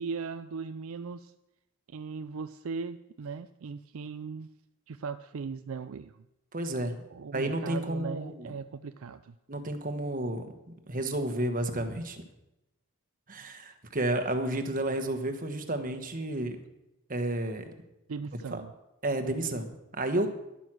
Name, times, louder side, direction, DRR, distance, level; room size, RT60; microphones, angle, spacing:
voice 1, 0.0-1.3 1.9-4.5 4.9-6.2 7.1-9.4 18.1-18.7, right 5 dB, 65° right, 11 dB, 0.4 m, -38 dB
voice 2, 6.5-7.0 7.3-8.5 9.5-12.2 13.3-16.6 17.1-17.7 18.5-18.6 19.0-20.3, right 1 dB, 40° right, 7 dB, 1.2 m, -31 dB
11.5 x 9.0 x 6.2 m, 0.93 s
head